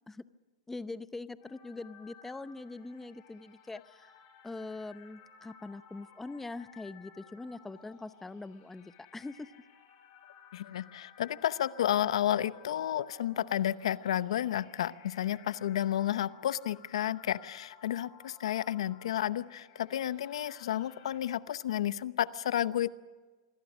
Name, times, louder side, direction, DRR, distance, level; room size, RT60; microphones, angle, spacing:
voice 1, 0.7-9.5, left 3 dB, 10° left, 14 dB, 0.7 m, -43 dB
sound 1, 1.4-21.2, left 7 dB, 50° left, 6.7 m, -57 dB
voice 2, 10.5-22.9, left 11 dB, 80° left, 15 dB, 0.8 m, -31 dB
27.0 x 22.0 x 6.2 m, 1.3 s
hypercardioid pair, 125°, 3 cm